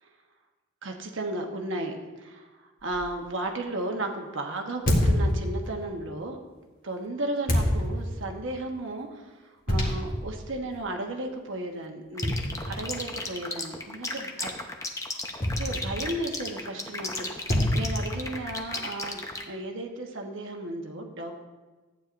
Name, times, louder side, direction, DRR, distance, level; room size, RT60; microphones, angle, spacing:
voice 1, 0.8-6.4 6.8-12.3 12.7-14.5 15.6-21.3, right 2 dB, 70° right, 3 dB, 1.1 m, -34 dB
sound 1, 2.9-3.1 4.9-5.9 7.5-8.3 9.7-10.3 10.8-10.9 12.2-13.1 15.4-16.2 17.5-18.6, left 1 dB, 45° left, 1.8 m, -27 dB
sound 2, 12.2-19.4, left 3 dB, 15° left, 0.7 m, -34 dB
14.5 x 9.2 x 2.6 m, 1.3 s
head